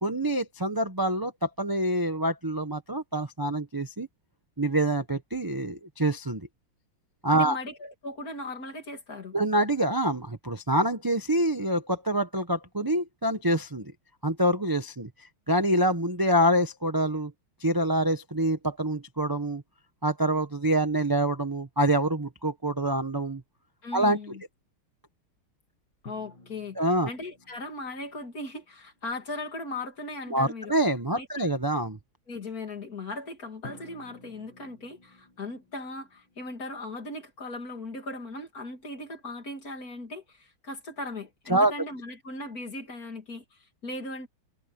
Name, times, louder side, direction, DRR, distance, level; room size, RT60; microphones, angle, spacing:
voice 1, 0.0-4.1 4.6-6.4 7.2-7.6 9.3-13.9 14.2-15.1 15.5-17.3 17.6-19.6 20.0-23.4 23.9-24.2 26.8-27.1 30.3-32.0 41.5-41.7, right 1 dB, 20° right, 0.6 m, -26 dB
voice 2, 7.3-9.4 23.8-24.4 26.0-30.8 31.1-31.5 32.3-44.3, left 2 dB, 40° left, 3.2 m, -38 dB
sound 1, 26.0-29.4 33.6-37.0, left 2 dB, 55° left, 8.1 m, -53 dB
omnidirectional pair, 2.4 m